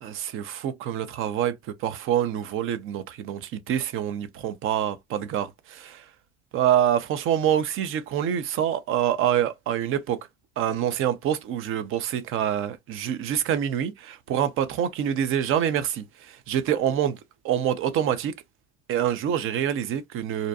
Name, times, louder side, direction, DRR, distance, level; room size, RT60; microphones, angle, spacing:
voice 1, 0.0-6.1 6.5-10.2 10.6-17.2 17.4-18.3 18.9-20.5, right 10 dB, 45° right, 0.5 m, -26 dB
2.5 x 2.1 x 2.6 m
hypercardioid pair, 70°, 30 cm